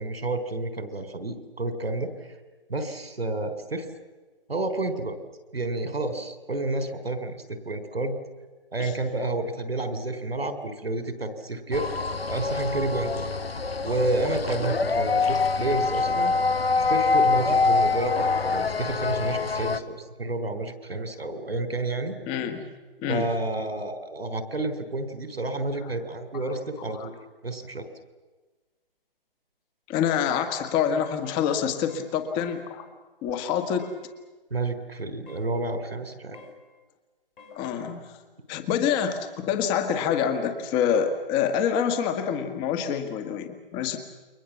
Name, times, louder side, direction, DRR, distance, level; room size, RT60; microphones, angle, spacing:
voice 1, 0.0-2.3 2.7-3.9 4.5-5.2 5.5-8.2 8.7-11.9 12.3-13.3 13.8-16.3 16.9-22.2 23.1-27.1 27.4-27.9 34.5-36.4, right 2 dB, 85° right, 10 dB, 4.0 m, -30 dB
sound 1, 11.7-19.8, left 4 dB, 90° left, 1.6 m, -25 dB
voice 2, 22.2-22.7 23.0-23.3 26.3-27.1 29.9-32.8 33.2-33.9 37.5-38.2 38.5-44.0, left 8 dB, 15° left, 8 dB, 1.7 m, -27 dB
sound 2, 30.1-30.3 30.7-30.9 31.2-31.5 31.9-32.1 32.4-32.7 33.8-34.0 35.3-35.5 36.3-36.6 37.4-37.6, left 4 dB, 55° left, 7.1 m, -49 dB
29.0 x 23.5 x 7.3 m, 1.3 s
figure-of-eight pair, 150°, 29 cm